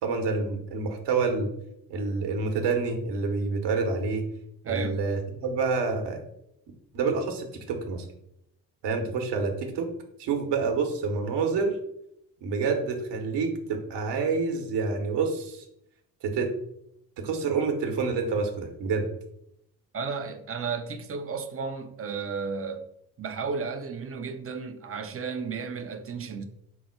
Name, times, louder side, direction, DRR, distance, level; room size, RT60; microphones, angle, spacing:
voice 1, 0.0-1.5 1.9-4.2 4.6-6.2 6.9-8.0 8.8-9.9 10.2-11.8 12.4-15.6 16.2-16.5 17.2-19.1, right 4 dB, 55° right, 1.1 m, -28 dB
voice 2, 4.6-5.0 19.9-22.9 23.2-26.4, right 5 dB, 30° right, 0.6 m, -33 dB
4.5 x 2.1 x 4.4 m
hypercardioid pair, 50°, 49 cm